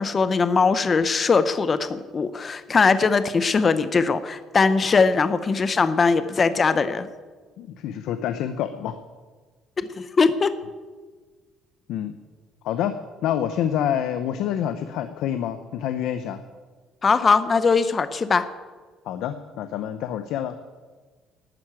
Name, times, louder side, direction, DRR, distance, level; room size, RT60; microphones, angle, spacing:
voice 1, 0.0-7.1 9.8-10.5 17.0-18.5, left 4 dB, 25° left, 12 dB, 0.6 m, -20 dB
voice 2, 7.6-9.0 11.9-12.2 12.6-13.0 13.2-16.4 19.0-20.6, left 10 dB, 70° left, 9 dB, 0.8 m, -27 dB
12.0 x 9.6 x 8.9 m, 1.4 s
cardioid pair, 165°, 0 cm